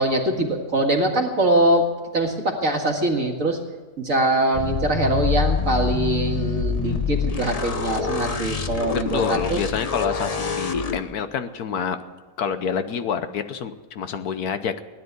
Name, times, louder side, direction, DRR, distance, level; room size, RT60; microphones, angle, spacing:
voice 1, 0.0-1.9 2.1-3.6 4.0-9.6, right 1 dB, 50° right, 2 dB, 2.2 m, -22 dB
sound 1, 4.5-11.0, left 5 dB, 40° left, 0.5 m, -26 dB
voice 2, 8.9-12.0 12.4-14.8, left 7 dB, 70° left, 10 dB, 1.3 m, -27 dB
17.0 x 10.5 x 8.1 m, 1.3 s
omnidirectional pair, 1.8 m